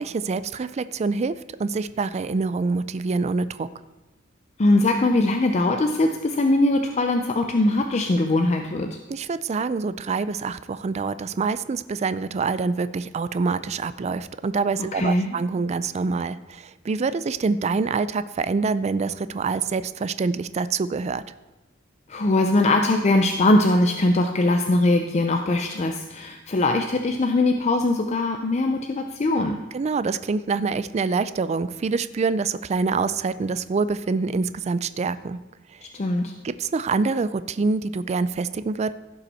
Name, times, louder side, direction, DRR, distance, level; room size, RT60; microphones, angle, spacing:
voice 1, 0.0-3.7 9.1-21.2 29.7-35.4 35.7-35.8 36.4-38.9, right 4 dB, 35° right, 14 dB, 0.3 m, -26 dB
voice 2, 4.6-9.0 14.9-15.4 22.1-29.6 35.8-36.3, left 2 dB, 35° left, 4 dB, 0.5 m, -21 dB
15.5 x 5.5 x 4.2 m, 1.1 s
head